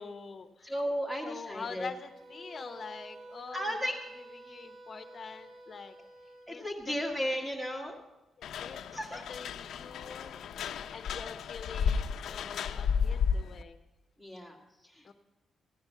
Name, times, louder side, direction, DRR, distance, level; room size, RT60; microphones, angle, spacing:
voice 1, 0.0-0.7 1.2-3.7 4.4-6.0 6.5-7.0 7.3-7.5 8.4-9.0 9.3-10.4 10.9-13.8 15.0-15.1, left 5 dB, 35° left, 7 dB, 0.9 m, -45 dB
voice 2, 0.6-1.9 3.5-3.9 6.0-6.1 6.5-8.0 8.9-9.2 14.2-15.1, equal, 5° right, 1 dB, 1.8 m, -35 dB
sound 1, 2.0-6.5, right 2 dB, 40° right, 4.0 m, -50 dB
sound 2, 8.4-13.6, left 6 dB, 75° left, 0.5 m, -33 dB
15.0 x 10.5 x 5.7 m, 1.0 s
wide cardioid pair, 175°, 0 cm